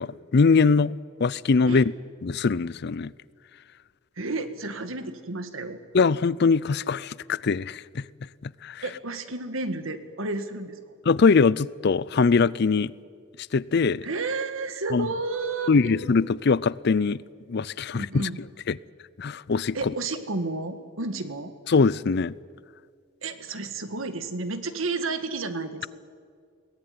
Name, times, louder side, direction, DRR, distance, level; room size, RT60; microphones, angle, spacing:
voice 1, 0.0-1.9 2.2-3.1 5.9-8.1 8.4-8.8 11.1-12.9 13.5-14.1 14.9-15.1 15.7-17.2 17.5-18.3 18.7-18.8 19.2-19.8 21.7-22.3, left 4 dB, 55° left, 0.5 m, -22 dB
voice 2, 4.2-5.8 8.8-11.0 14.0-15.9 17.9-18.4 19.7-21.5 23.2-25.9, right 3 dB, 90° right, 1.8 m, -31 dB
22.0 x 18.0 x 9.7 m
head